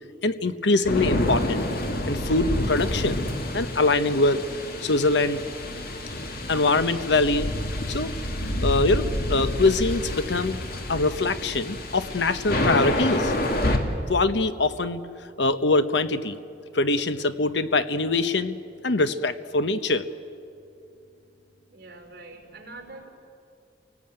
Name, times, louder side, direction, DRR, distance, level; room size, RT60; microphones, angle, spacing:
voice 1, 0.2-1.6 2.1-3.2 3.5-4.4 4.8-5.4 6.5-7.5 7.9-8.1 8.4-10.6 10.9-13.3 14.1-15.0 15.4-16.4 16.7-18.6 18.8-20.1, left 3 dB, 70° left, 11 dB, 1.0 m, -23 dB
sound 1, 0.8-13.8, left 1 dB, 55° left, 2.4 m, -28 dB
voice 2, 21.7-23.1, right 2 dB, 60° right, -1 dB, 4.8 m, -44 dB
30.0 x 18.5 x 8.9 m, 2.6 s
head